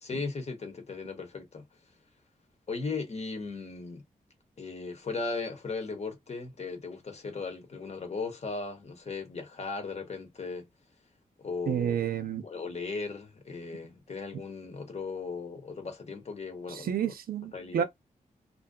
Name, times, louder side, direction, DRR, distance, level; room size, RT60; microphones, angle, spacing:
voice 1, 0.0-1.7 2.7-4.0 4.6-10.7 11.4-11.9 12.4-17.1 17.5-17.8, left 4 dB, 45° left, 0.9 m, -37 dB
voice 2, 11.7-12.4 16.7-17.8, right 9 dB, 80° right, 0.5 m, -30 dB
2.6 x 2.2 x 2.3 m
cardioid pair, 85°, 15 cm